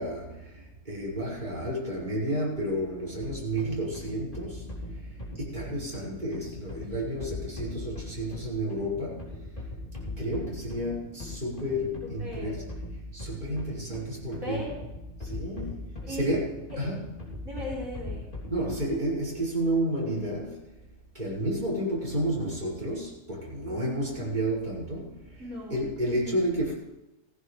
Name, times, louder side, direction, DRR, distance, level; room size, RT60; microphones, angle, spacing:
voice 1, 0.0-4.8 5.3-9.3 10.0-12.7 13.1-14.7 15.2-17.0 18.5-20.6 21.1-25.2 25.7-26.7, right 1 dB, 30° right, -6 dB, 6.0 m, -31 dB
sound 1, 3.2-19.1, left 2 dB, 35° left, 3.5 m, -40 dB
voice 2, 12.2-12.6 14.4-14.7 16.0-16.2 16.7-17.0 17.4-18.2 25.4-26.3, left 1 dB, 60° right, -5 dB, 4.5 m, -38 dB
16.5 x 15.5 x 3.4 m, 0.98 s
omnidirectional pair, 1.5 m